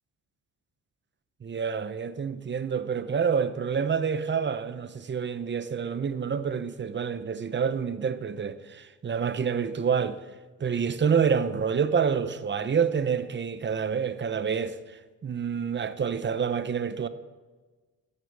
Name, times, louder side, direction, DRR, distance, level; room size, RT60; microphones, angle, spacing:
voice 1, 1.4-10.2 10.6-17.1, right 6 dB, 30° right, 0.7 m, -28 dB
13.0 x 9.7 x 4.7 m
cardioid pair, 95°, 36 cm